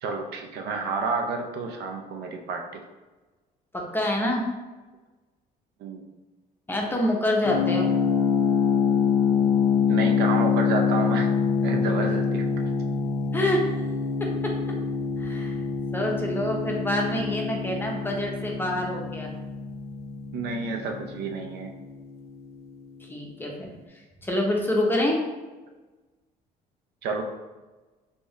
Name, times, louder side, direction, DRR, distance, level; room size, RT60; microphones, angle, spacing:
voice 1, 0.0-2.8 5.8-6.1 9.9-11.3 11.6-12.5 20.3-21.7 27.0-27.2, right 4 dB, 75° right, 4 dB, 0.6 m, -30 dB
voice 2, 3.7-4.4 6.7-7.9 13.3-13.6 14.2-14.5 15.2-15.6 15.9-19.3 23.1-23.8 24.2-25.2, left 1 dB, 10° left, -1 dB, 0.7 m, -26 dB
sound 1, 7.4-22.2, left 6 dB, 70° left, 0.5 m, -25 dB
3.5 x 2.7 x 3.1 m, 1.2 s
cardioid pair, 110°, 17 cm